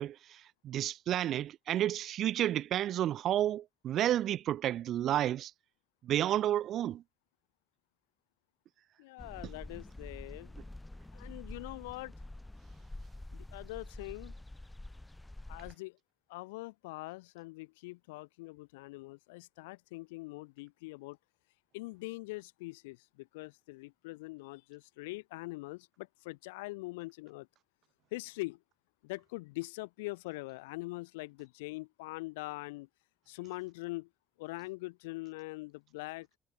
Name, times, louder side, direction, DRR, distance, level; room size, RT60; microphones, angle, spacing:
voice 1, 0.0-5.5 6.0-7.0, right 12 dB, 55° right, 1.5 m, -31 dB
voice 2, 9.0-10.5 11.1-12.1 13.3-14.3 15.5-16.0 16.3-21.2 21.7-27.5 28.1-28.6 29.0-32.9 33.3-34.1 34.4-36.3, left 23 dB, 80° left, 1.2 m, -43 dB
sound 1, 9.2-15.7, left 1 dB, 10° left, 4.1 m, -47 dB
hypercardioid pair, 65°, 0 cm